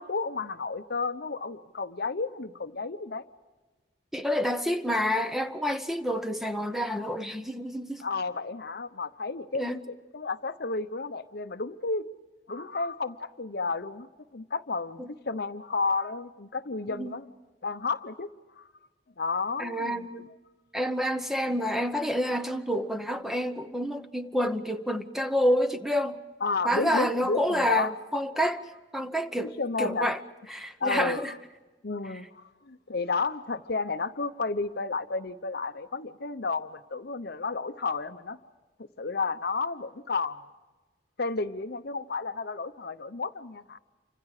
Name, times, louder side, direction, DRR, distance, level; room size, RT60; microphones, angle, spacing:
voice 1, 0.0-3.2 8.0-12.0 12.5-17.3 17.6-18.3 18.6-18.7 19.2-20.1 26.4-27.9 29.6-30.1 30.8-31.3 31.8-38.4 39.0-40.4 41.2-43.8, left 4 dB, 60° left, 0.9 m, -32 dB
voice 2, 4.1-8.0 9.5-9.8 15.0-15.1 16.9-17.2 19.6-20.3 20.7-26.2 26.6-30.2 30.5-31.3, equal, ahead, 0.9 m, -28 dB
28.5 x 25.5 x 4.9 m
head